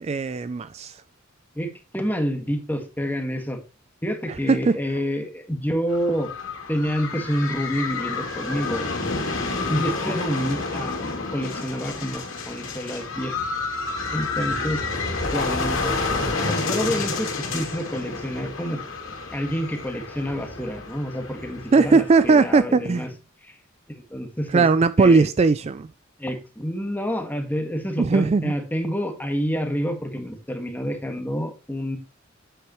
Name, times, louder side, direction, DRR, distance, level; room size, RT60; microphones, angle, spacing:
voice 1, 0.0-1.0 4.3-4.8 21.7-23.1 24.5-25.9 28.0-28.5, right 4 dB, 30° right, 0.3 m, -19 dB
voice 2, 1.5-3.6 4.0-6.3 6.7-8.8 9.7-13.3 14.1-14.8 15.3-18.8 19.3-23.1 23.4-23.6 23.9-24.7 25.0-25.3 26.2-32.0, equal, 10° left, 1.7 m, -28 dB
sound 1, 5.9-22.5, left 3 dB, 90° left, 2.6 m, -29 dB
9.1 x 8.1 x 3.1 m
head